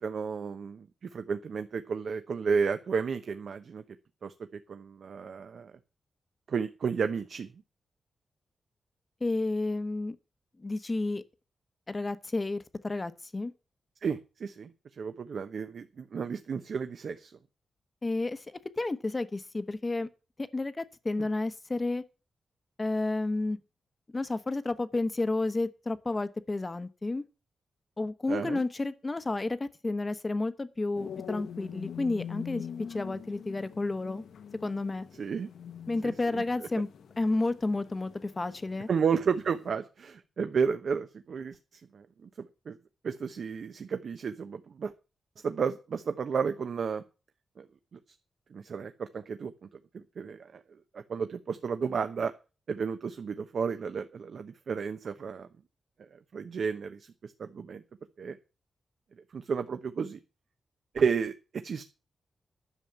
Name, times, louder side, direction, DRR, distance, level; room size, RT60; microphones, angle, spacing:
voice 1, 0.0-3.8 4.2-4.3 4.7-5.7 6.5-7.5 14.0-14.7 15.0-17.3 21.2-21.3 28.3-28.6 35.2-35.5 36.0-36.7 38.9-42.8 43.0-44.9 45.4-47.0 47.6-47.7 48.5-49.5 49.9-50.6 50.9-52.3 52.7-55.5 56.1-57.8 58.2-58.4 59.3-60.2 60.9-61.3 61.6-61.8, right 6 dB, 55° right, 0.9 m, -32 dB
voice 2, 9.2-10.2 10.6-11.2 11.9-13.5 18.0-18.4 18.8-20.1 20.5-22.0 22.8-23.6 24.1-27.2 28.0-34.2 34.6-35.0 35.9-36.9 37.2-38.9, left 2 dB, 20° left, 1.0 m, -31 dB
sound 1, 30.9-39.7, left 8 dB, 90° left, 1.1 m, -44 dB
11.0 x 7.2 x 8.5 m
wide cardioid pair, 160°, 0 cm